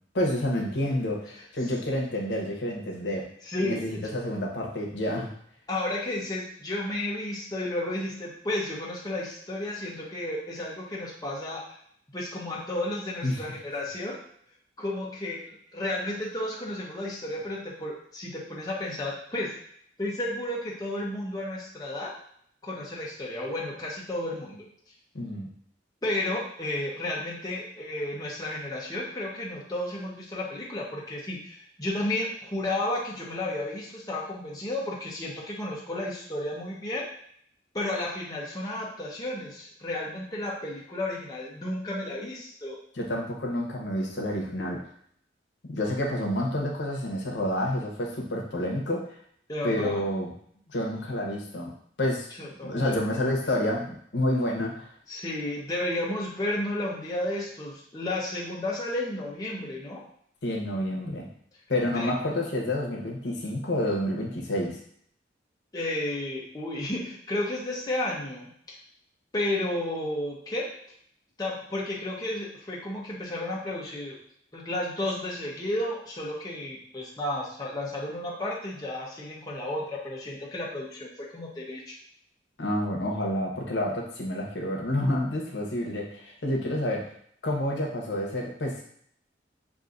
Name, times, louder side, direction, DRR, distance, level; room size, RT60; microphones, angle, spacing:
voice 1, 0.1-3.3 3.6-5.3 13.2-13.4 25.1-25.5 42.9-44.8 45.7-49.1 49.6-50.3 50.7-51.7 52.0-52.3 52.6-54.9 60.4-61.3 61.7-64.8 82.6-87.1 87.4-88.8, left 1 dB, 75° left, -1 dB, 0.9 m, -29 dB
voice 2, 3.4-4.1 5.7-11.6 12.1-14.2 14.8-19.5 20.0-22.1 22.6-24.7 26.0-37.0 37.7-42.8 49.5-50.0 52.4-53.2 55.1-60.0 61.9-62.1 65.7-68.8 69.3-70.7 71.4-74.2 74.5-82.0, left 1 dB, 20° left, -5 dB, 0.8 m, -32 dB
6.1 x 2.6 x 2.6 m, 0.64 s
head